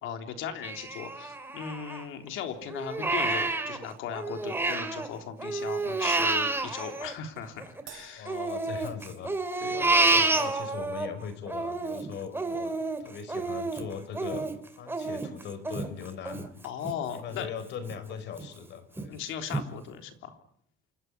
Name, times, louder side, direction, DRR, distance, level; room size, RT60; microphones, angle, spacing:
voice 1, 0.0-8.3 9.6-9.9 16.6-17.5 19.1-20.4, left 8 dB, 80° left, 6 dB, 3.6 m, -38 dB
Crying sobbing, 0.6-2.3 2.7-5.1 5.4-7.8 8.3-11.1 11.5-16.9 17.4-17.5 17.9-18.5 19.0-19.1 19.5-19.6, right 3 dB, 10° right, 2.6 m, -29 dB
Crash cymbal, 7.9-9.5, right 12 dB, 80° right, 5.4 m, -51 dB
voice 2, 8.1-9.3 9.7-14.5 14.8-16.5 16.8-19.2, left 7 dB, 60° left, 12 dB, 4.7 m, -40 dB
27.5 x 14.0 x 9.9 m, 0.68 s
cardioid pair, 165°, 20 cm